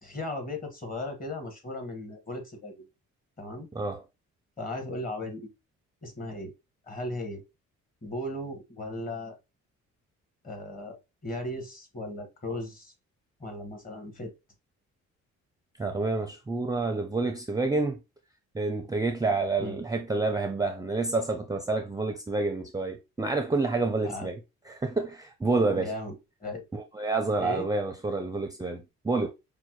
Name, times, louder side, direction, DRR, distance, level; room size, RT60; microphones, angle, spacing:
voice 1, 0.0-2.7 3.4-3.7 4.6-5.5 6.0-6.5 6.9-7.4 8.0-9.4 10.4-12.9 13.4-14.3 19.6-19.8 24.0-24.3 25.7-26.6 27.4-27.7, left 1 dB, 30° left, 1.5 m, -36 dB
voice 2, 15.8-18.0 18.5-24.4 24.7-25.9 26.7-29.3, right 3 dB, 10° right, 0.5 m, -28 dB
5.2 x 2.2 x 3.1 m
cardioid pair, 90°, 30 cm